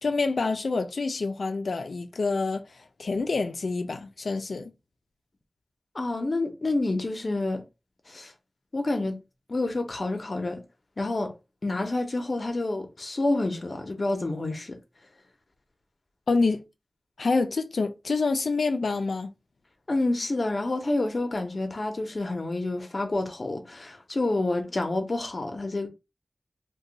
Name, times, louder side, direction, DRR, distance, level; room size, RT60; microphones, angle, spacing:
voice 1, 0.0-2.6 3.0-4.7 16.3-16.6 17.2-19.3, left 3 dB, 90° left, 0.4 m, -27 dB
voice 2, 5.9-7.6 8.1-8.3 8.7-9.2 9.5-10.6 11.0-11.3 11.6-14.8 19.9-25.9, left 2 dB, 60° left, 0.8 m, -28 dB
2.7 x 2.2 x 3.8 m
wide cardioid pair, 55°, 0 cm